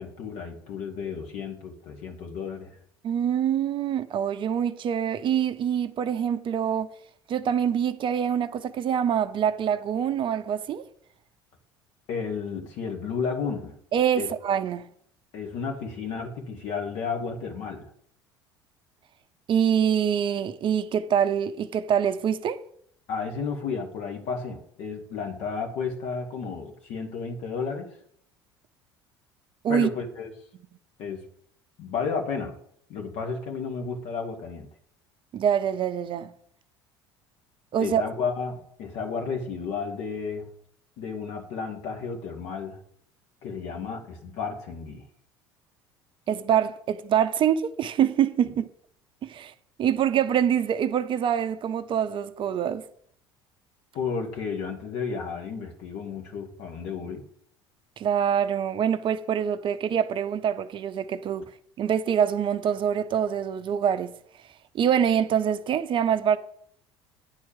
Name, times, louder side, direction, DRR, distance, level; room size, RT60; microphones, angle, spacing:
voice 1, 0.0-2.7 12.1-13.7 14.1-14.3 15.3-17.9 23.1-27.9 29.7-30.3 31.0-31.2 31.8-32.6 32.9-34.7 37.8-40.5 41.0-42.8 43.4-45.0 53.9-57.2, left 5 dB, 55° left, 2.0 m, -32 dB
voice 2, 3.0-6.9 7.3-10.8 13.9-14.8 19.5-22.6 29.6-29.9 35.3-36.3 37.7-38.0 46.3-48.6 49.2-49.5 49.8-52.8 58.0-61.5 61.8-64.1 64.7-66.4, right 8 dB, 40° right, 0.6 m, -25 dB
9.8 x 4.4 x 7.3 m
figure-of-eight pair, 65°, 13 cm